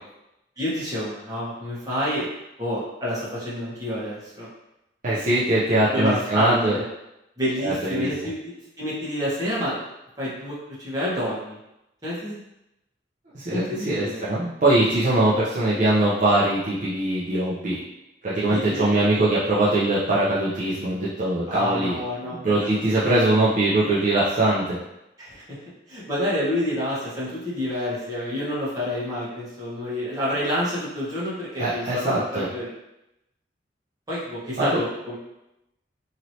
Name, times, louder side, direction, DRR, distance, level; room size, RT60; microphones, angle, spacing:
voice 1, 0.6-2.3 2.6-4.5 5.0-5.3 5.9-6.9 7.4-8.4 8.8-9.8 10.2-11.6 12.0-12.4 13.5-14.2 18.5-19.1 21.5-23.0 25.2-25.6 25.9-32.7 34.1-35.2, equal, 20° right, -9 dB, 1.1 m, -28 dB
voice 2, 5.0-6.8 7.6-8.1 13.3-17.8 18.2-22.0 22.4-24.8 31.6-32.5 34.6-34.8, right 1 dB, 45° right, -9 dB, 0.6 m, -22 dB
3.0 x 2.8 x 2.7 m, 0.89 s
head